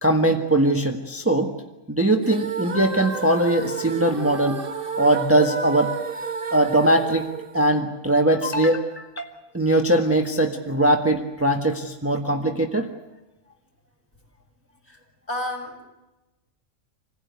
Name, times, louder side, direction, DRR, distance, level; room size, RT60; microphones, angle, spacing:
voice 1, 0.0-1.5 1.9-4.6 5.0-5.9 6.5-7.3 7.5-9.3 9.5-12.9, right 1 dB, 10° right, 4 dB, 1.5 m, -21 dB
airy female vocal, 2.2-8.3, right 5 dB, 45° right, 1.6 m, -32 dB
voice 2, 15.3-15.9, left 1 dB, 45° left, 0 dB, 6.6 m, -31 dB
27.0 x 16.5 x 9.6 m, 1.0 s
omnidirectional pair, 1.3 m